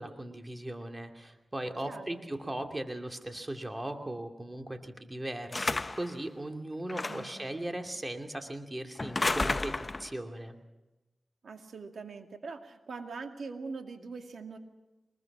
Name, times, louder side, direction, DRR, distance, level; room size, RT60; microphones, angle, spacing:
voice 1, 0.0-10.6, right 1 dB, 25° right, 4 dB, 2.7 m, -38 dB
voice 2, 1.8-2.2 7.1-7.4 11.4-14.6, right 4 dB, 80° right, 5 dB, 2.3 m, -42 dB
sound 1, 5.5-6.1 6.9-7.4 9.0-10.1, left 2 dB, 35° left, 0.8 m, -31 dB
24.0 x 21.0 x 6.1 m, 1.0 s
cardioid pair, 50°, 0 cm